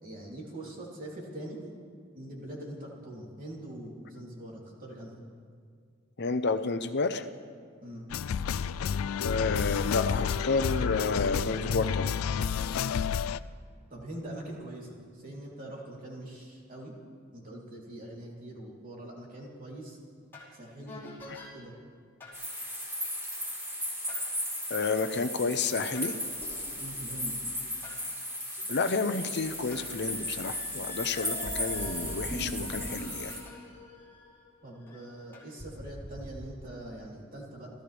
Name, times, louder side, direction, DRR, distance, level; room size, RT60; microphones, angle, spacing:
voice 1, 0.0-1.6 2.1-5.2 7.8-8.0 13.9-16.9 17.3-20.0 20.5-21.0 21.5-21.7 26.8-27.4 34.6-37.7, right 1 dB, 45° right, -3 dB, 3.3 m, -43 dB
voice 2, 6.2-7.3 9.2-12.2 21.3-21.4 24.7-26.1 28.7-33.3, left 4 dB, 55° left, 9 dB, 0.8 m, -30 dB
sound 1, 8.1-13.4, left 7 dB, 90° left, 0.4 m, -30 dB
sound 2, 20.3-20.5 20.9-21.5 22.2-22.4 24.1-24.2 25.9-28.0 28.6-28.7 29.3-35.0 35.3-36.4, left 1 dB, 10° left, 4.4 m, -43 dB
sound 3, 22.3-33.4, equal, 15° right, 4.2 m, -36 dB
28.0 x 15.0 x 3.5 m, 2.1 s
head